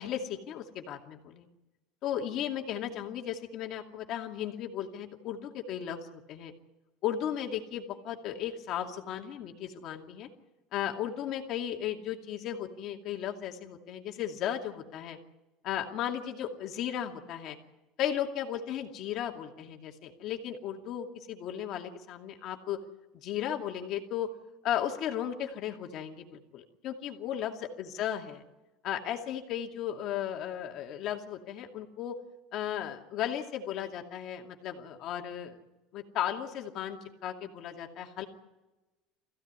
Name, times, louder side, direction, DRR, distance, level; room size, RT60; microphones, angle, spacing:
voice 1, 0.0-1.5 2.0-6.5 7.0-10.3 10.7-15.2 15.6-17.6 18.0-22.8 23.2-24.3 24.6-28.4 28.8-32.2 32.5-35.6 35.9-38.3, left 10 dB, 45° left, 3 dB, 2.4 m, -35 dB
22.0 x 16.0 x 9.6 m, 1.1 s
cardioid pair, 160°, 0 cm